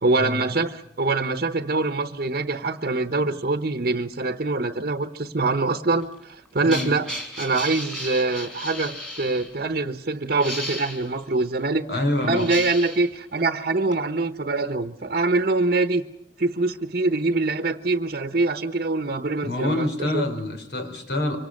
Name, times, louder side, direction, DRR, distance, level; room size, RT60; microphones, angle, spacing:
voice 1, 0.0-7.1 7.4-16.0 16.4-20.2, right 3 dB, 50° right, 8 dB, 1.0 m, -24 dB
sound 1, 6.0-9.5 10.3-11.1 12.1-13.1 13.9-14.0, left 1 dB, 5° left, 3.8 m, -34 dB
voice 2, 6.6-6.9 11.9-12.5 19.4-21.4, left 1 dB, 65° left, 7 dB, 4.3 m, -26 dB
26.0 x 25.0 x 6.6 m, 0.77 s
head